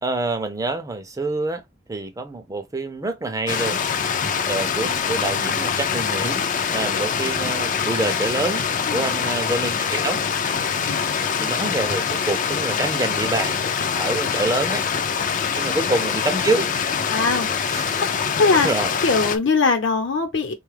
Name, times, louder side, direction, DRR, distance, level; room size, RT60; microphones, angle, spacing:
voice 1, 0.0-1.6 1.9-3.8 4.4-6.4 6.7-10.2 11.4-13.6 13.9-14.8 15.6-16.7 17.7-18.0 18.5-18.9, right 2 dB, 15° right, 0.4 m, -26 dB
Stream, 3.5-19.4, left 6 dB, 40° left, 0.4 m, -24 dB
voice 2, 17.1-17.5 18.4-18.7 19.0-20.5, left 4 dB, 65° left, 0.9 m, -21 dB
3.8 x 2.3 x 3.2 m
head